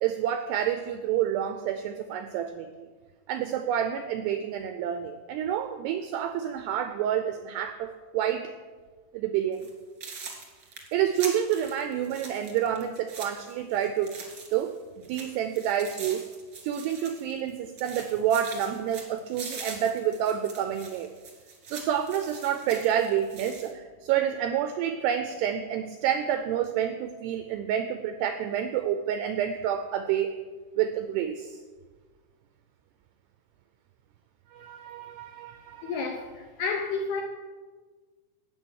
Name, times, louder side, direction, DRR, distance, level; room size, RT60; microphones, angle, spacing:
voice 1, 0.0-2.9 3.3-8.5 9.1-9.7 10.9-14.1 14.5-14.7 15.1-16.2 16.6-21.1 21.7-30.3 30.8-31.6 34.5-36.0, right 9 dB, 90° right, 8 dB, 2.4 m, -28 dB
sound 1, 9.5-9.7 10.0-14.8 15.0-17.5 17.8-23.7, right 4 dB, 50° right, 1.4 m, -43 dB
voice 2, 35.8-37.2, left 4 dB, 80° left, 3 dB, 2.2 m, -31 dB
12.5 x 8.7 x 6.4 m, 1.4 s
omnidirectional pair, 5.4 m